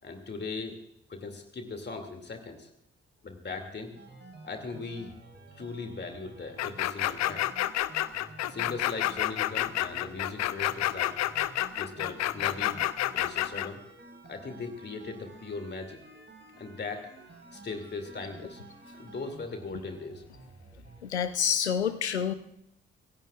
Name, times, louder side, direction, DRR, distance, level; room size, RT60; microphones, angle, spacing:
voice 1, 0.0-0.8 1.1-2.7 3.2-3.9 4.4-5.1 5.5-7.5 8.4-11.1 11.8-12.8 13.1-13.8 14.2-16.0 16.6-17.1 17.5-18.6 18.9-20.2, left 3 dB, 30° left, 5 dB, 2.5 m, -39 dB
sound 1, 4.0-21.0, right 2 dB, 35° right, 4.6 m, -51 dB
sound 2, 6.6-13.7, left 14 dB, 55° left, 0.7 m, -29 dB
voice 2, 21.0-22.3, left 8 dB, 85° left, 12 dB, 0.7 m, -28 dB
27.0 x 16.0 x 2.5 m, 0.78 s
figure-of-eight pair, 40°, 32 cm